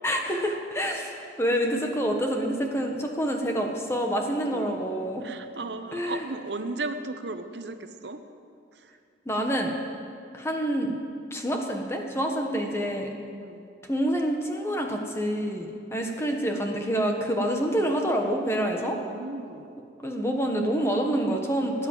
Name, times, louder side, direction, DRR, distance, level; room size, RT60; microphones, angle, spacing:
voice 1, 0.0-5.2 5.9-6.3 9.2-9.8 10.3-10.9 11.3-13.1 13.9-19.0 20.0-21.9, equal, 15° left, 2 dB, 1.4 m, -27 dB
voice 2, 5.2-8.2 8.8-8.9 13.4-13.6 18.7-19.7, right 3 dB, 75° right, 8 dB, 0.9 m, -36 dB
16.5 x 10.0 x 7.6 m, 2.5 s
head